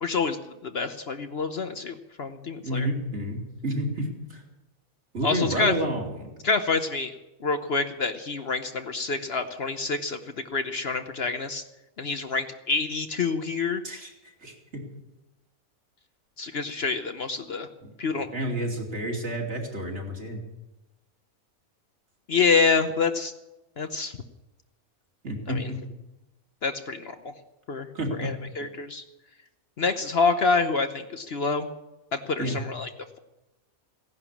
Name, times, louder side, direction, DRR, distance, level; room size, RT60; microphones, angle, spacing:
voice 1, 0.0-2.9 5.2-5.7 6.4-10.2 10.5-11.6 12.0-13.8 16.4-17.7 18.0-18.3 22.3-23.3 23.8-24.1 25.5-25.6 26.6-27.3 27.7-27.9 28.2-29.0 29.8-31.7 32.1-32.9, left 4 dB, 50° left, 8 dB, 1.0 m, -27 dB
voice 2, 2.6-4.4 5.1-6.3 13.8-14.1 14.4-14.8 17.8-17.9 18.3-20.4 25.2-25.8 27.9-28.3 32.4-32.6, right 1 dB, 50° right, 0 dB, 3.1 m, -30 dB
16.5 x 11.0 x 7.3 m, 1.0 s
omnidirectional pair, 1.4 m